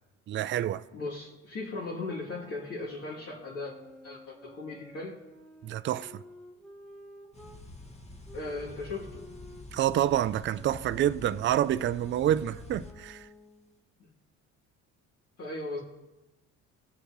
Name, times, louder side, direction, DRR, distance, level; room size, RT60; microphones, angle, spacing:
voice 1, 0.3-0.8 5.6-6.2 9.7-13.3, right 11 dB, 40° right, 0.4 m, -28 dB
voice 2, 0.9-3.7 4.0-5.2 8.3-9.2 15.4-15.8, left 2 dB, 50° left, 2.8 m, -37 dB
sound 1, 2.0-7.6 8.2-13.7, equal, ahead, 1.7 m, -52 dB
sound 2, 7.3-12.9, left 2 dB, 20° left, 1.6 m, -47 dB
18.5 x 6.5 x 3.1 m
cardioid pair, 95°, 31 cm